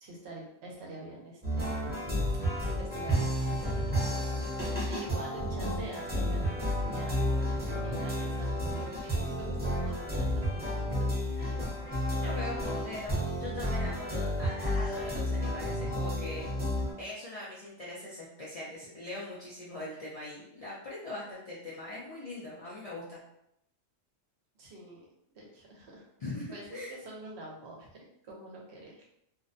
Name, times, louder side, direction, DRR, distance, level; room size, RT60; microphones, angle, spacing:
voice 1, 0.0-1.8 2.6-11.6 24.6-25.1 25.3-26.1 26.5-26.6 26.9-28.0 28.2-29.0, right 1 dB, 65° right, -2 dB, 0.8 m, -46 dB
sound 1, 1.4-16.9, equal, 10° right, 0.7 m, -31 dB
voice 2, 12.2-16.4 17.0-23.2 26.2-26.9, left 2 dB, 70° left, -7 dB, 0.3 m, -41 dB
2.5 x 2.1 x 2.5 m, 0.77 s
omnidirectional pair, 1.3 m